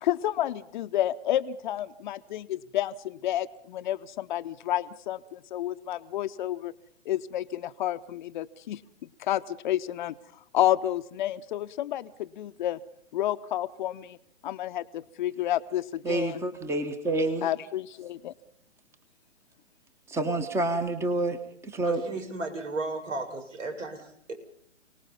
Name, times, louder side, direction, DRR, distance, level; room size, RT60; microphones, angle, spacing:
voice 1, 0.0-6.7 7.0-8.8 9.2-10.1 10.5-12.8 13.1-14.2 14.4-16.4 17.4-18.3, left 12 dB, 40° left, 11 dB, 0.9 m, -30 dB
voice 2, 16.0-17.5 20.1-21.4 21.6-22.0, right 2 dB, 5° right, 10 dB, 1.2 m, -28 dB
voice 3, 21.8-24.3, right 2 dB, 75° right, 6 dB, 6.7 m, -35 dB
30.0 x 19.0 x 5.5 m, 0.62 s
hypercardioid pair, 135°, 37 cm